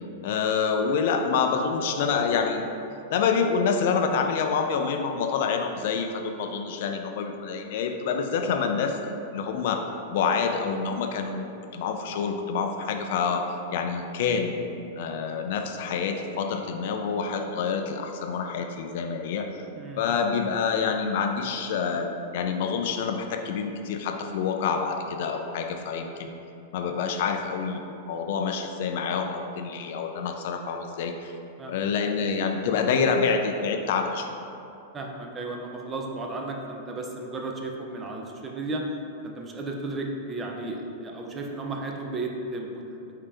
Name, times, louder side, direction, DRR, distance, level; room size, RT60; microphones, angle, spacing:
voice 1, 0.2-2.8 3.1-9.0 9.3-9.9 10.1-11.5 11.7-14.6 15.0-19.6 20.0-26.3 26.7-31.3 31.7-34.3, left 5 dB, 60° left, 5 dB, 0.4 m, -27 dB
voice 2, 31.6-31.9 34.9-38.8 39.2-43.1, right 2 dB, 20° right, 1 dB, 0.4 m, -34 dB
5.1 x 2.8 x 3.4 m, 2.7 s
supercardioid pair, 150°, 0 cm